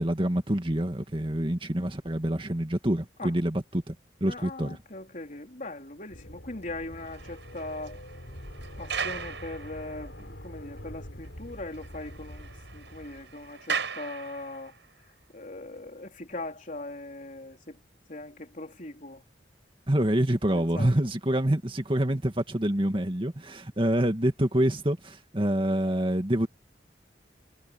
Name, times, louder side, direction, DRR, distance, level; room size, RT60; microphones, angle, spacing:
voice 1, 0.0-3.9 4.2-4.8 19.9-26.5, right 1 dB, 30° right, 2.1 m, -26 dB
voice 2, 4.3-8.0 8.8-14.7 15.3-17.8 18.1-19.2 20.5-20.9, left 2 dB, 45° left, 4.1 m, -40 dB
sound 1, 6.1-13.5, equal, 80° left, 5.0 m, -45 dB
sound 2, 6.8-10.3 10.8-10.9 11.2-11.3 11.6-14.9, right 6 dB, 85° right, 6.3 m, -38 dB
head